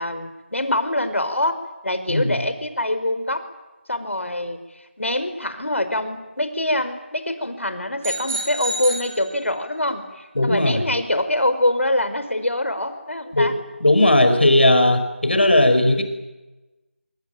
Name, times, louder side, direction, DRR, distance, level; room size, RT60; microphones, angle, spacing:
voice 1, 0.0-1.6 1.8-3.4 3.9-13.5, left 1 dB, 80° left, 9 dB, 5.2 m, -24 dB
sound 1, 8.0-9.8, right 2 dB, 10° right, 4.3 m, -30 dB
voice 2, 10.4-10.8 13.3-13.5 13.8-16.0, left 1 dB, 55° left, 8 dB, 5.2 m, -17 dB
24.5 x 23.5 x 9.1 m, 1.1 s
figure-of-eight pair, 175°, 7 cm